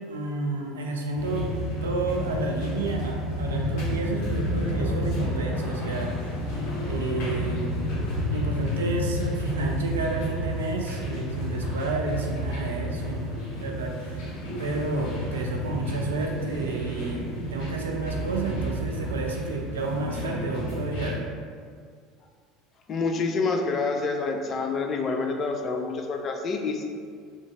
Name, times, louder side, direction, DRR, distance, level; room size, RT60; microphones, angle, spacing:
voice 1, 0.1-1.5 1.8-6.3 6.9-7.9 8.3-14.2 14.6-21.2, right 3 dB, 85° right, 0 dB, 0.4 m, -31 dB
sound 1, 1.1-21.1, equal, 60° left, 1.0 m, -30 dB
voice 2, 22.9-26.8, left 4 dB, 40° left, 4 dB, 0.4 m, -27 dB
3.0 x 2.5 x 3.5 m, 2.1 s
hypercardioid pair, 70°, 0 cm